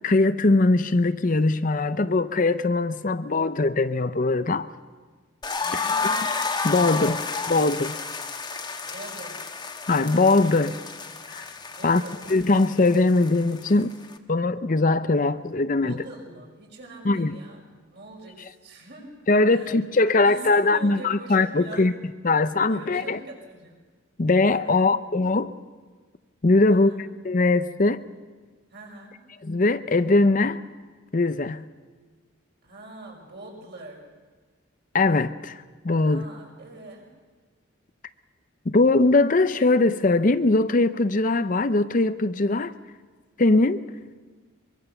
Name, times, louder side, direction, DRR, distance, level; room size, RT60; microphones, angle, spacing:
voice 1, 0.0-4.7 6.6-7.9 9.9-10.8 11.3-11.5 11.8-12.0 12.3-13.9 14.3-15.9 17.1-17.3 19.3-21.9 22.2-23.2 24.2-25.5 26.4-26.9 27.2-28.0 29.4-30.6 31.1-31.6 34.9-36.3 38.7-42.7 43.4-43.8, left 2 dB, 40° left, 0.6 m, -21 dB
sound 1, 5.4-14.2, left 4 dB, 20° left, 1.2 m, -31 dB
voice 2, 5.6-6.3 8.8-9.5 11.7-12.2 15.8-17.6 17.9-19.8 20.2-22.0 22.7-23.8 24.6-25.0 26.7-27.0 28.7-29.2 32.6-34.1 36.0-37.1, right 2 dB, 50° right, 5.8 m, -43 dB
23.5 x 23.5 x 6.9 m
head